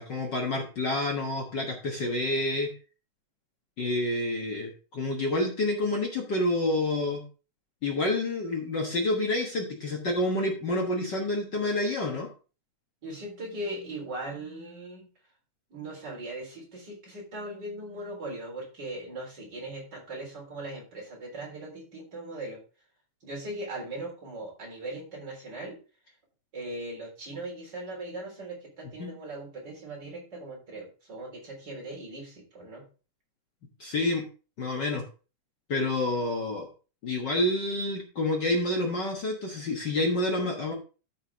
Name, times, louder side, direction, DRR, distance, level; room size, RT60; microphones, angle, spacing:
voice 1, 0.0-2.7 3.8-7.2 7.8-12.3 29.0-29.1 33.8-34.3 34.6-35.0 35.7-36.7 37.0-40.7, left 2 dB, 50° left, 0 dB, 1.4 m, -28 dB
voice 2, 13.0-15.1 15.7-22.6 23.2-25.8 26.5-32.8, right 1 dB, 30° right, -2 dB, 4.2 m, -39 dB
13.5 x 5.4 x 3.5 m, 0.35 s
omnidirectional pair, 3.6 m